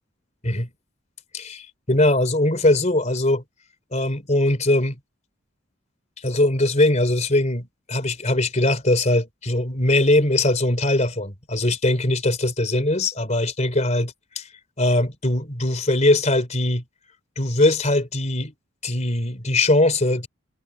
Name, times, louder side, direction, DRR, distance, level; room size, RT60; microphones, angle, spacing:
voice 1, 1.3-3.4 3.9-5.0 6.2-14.4 14.8-16.8 17.4-18.5 18.8-20.3, left 1 dB, 35° left, 3.6 m, -21 dB
head